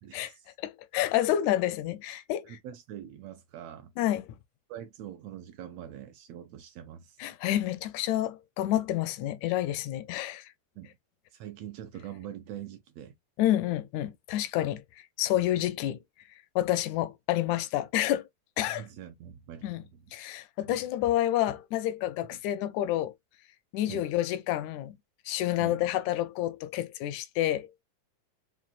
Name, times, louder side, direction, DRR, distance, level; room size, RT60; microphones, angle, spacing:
voice 1, 0.0-0.5 2.4-3.9 4.7-7.2 10.8-10.9 11.3-13.1 15.6-15.7 18.7-20.1 20.7-20.8 22.3-22.4 23.9-24.0 25.6-25.9, right 10 dB, 80° right, 1.5 m, -44 dB
voice 2, 0.6-2.6 4.0-4.3 7.2-10.5 13.4-14.8 15.2-16.0 16.6-18.3 18.6-18.8 19.6-19.8 20.1-23.1 23.7-25.0 25.3-27.7, left 13 dB, 85° left, 1.9 m, -29 dB
5.9 x 2.4 x 2.4 m
omnidirectional pair, 3.3 m